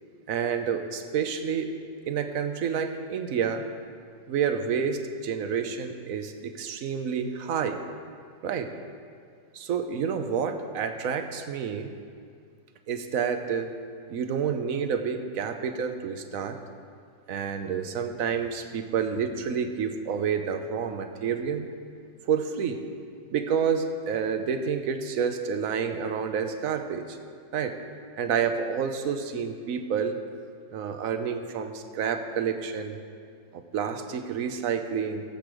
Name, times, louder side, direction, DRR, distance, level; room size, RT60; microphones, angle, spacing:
voice 1, 0.3-1.7 2.1-3.7 4.3-7.8 8.4-8.7 9.5-11.9 12.9-13.7 14.1-16.6 17.3-21.7 22.3-22.8 23.3-27.2 27.5-27.8 28.2-30.2 30.7-33.0 33.5-35.2, right 7 dB, 55° right, 7 dB, 1.1 m, -29 dB
18.0 x 8.0 x 5.0 m, 2.2 s
omnidirectional pair, 2.0 m